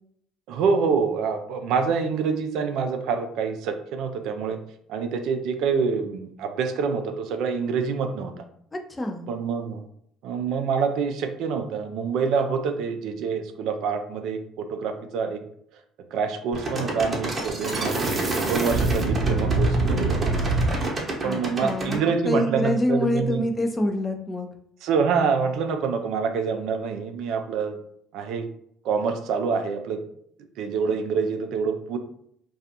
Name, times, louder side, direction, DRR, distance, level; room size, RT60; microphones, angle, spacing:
voice 1, 0.5-4.6 4.9-8.3 9.3-9.8 10.2-15.4 16.1-18.0 18.5-20.4 21.2-23.4 24.8-27.8 28.1-28.5 28.8-30.0 30.6-32.0, right 5 dB, 65° right, 6 dB, 0.3 m, -26 dB
voice 2, 8.7-9.3 21.2-22.0 22.2-24.5 30.9-31.0, left 1 dB, 20° left, 4 dB, 0.5 m, -26 dB
sound 1, 16.5-22.0, right 2 dB, 35° right, 0.8 m, -25 dB
2.4 x 2.3 x 2.7 m, 0.69 s
hypercardioid pair, 60°, 0 cm